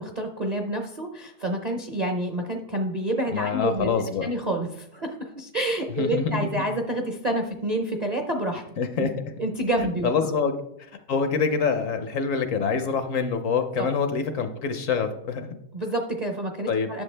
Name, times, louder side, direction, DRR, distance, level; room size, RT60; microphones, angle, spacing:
voice 1, 0.0-3.9 4.2-8.6 9.0-9.1 9.4-10.4 13.8-13.9 15.7-17.0, right 1 dB, 40° right, 2 dB, 0.5 m, -28 dB
voice 2, 3.3-4.3 6.0-6.4 8.8-9.1 10.0-10.5 10.9-15.6 16.7-16.9, left 5 dB, 65° left, 9 dB, 0.9 m, -25 dB
10.5 x 6.7 x 3.3 m, 0.77 s
omnidirectional pair, 1.7 m